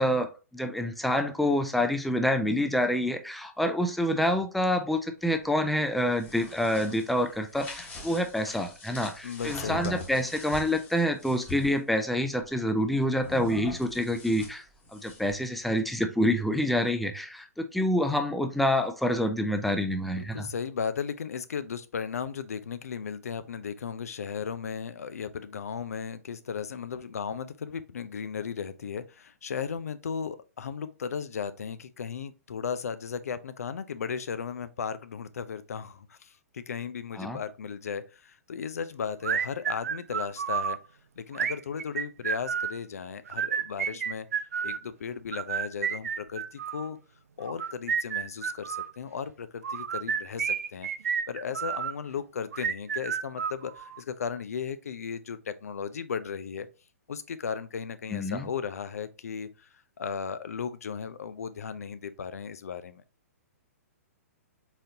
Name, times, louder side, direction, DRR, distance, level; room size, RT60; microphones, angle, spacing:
voice 1, 0.0-14.6 14.9-20.5 37.2-37.4 58.1-58.4, left 1 dB, ahead, 0.4 m, -27 dB
sound 1, 6.0-11.8 13.2-15.5, left 3 dB, 20° left, 1.3 m, -42 dB
voice 2, 9.2-10.3 20.1-40.8 41.2-47.0 47.4-50.9 51.3-56.7 57.1-59.7 60.0-63.0, left 6 dB, 70° left, 0.5 m, -36 dB
sound 2, 39.2-40.8 41.3-42.8 43.3-44.8 45.3-46.9 47.5-48.9 49.6-51.9 52.5-54.0, right 7 dB, 70° right, 0.4 m, -30 dB
4.1 x 3.8 x 2.8 m
figure-of-eight pair, 120°, 8 cm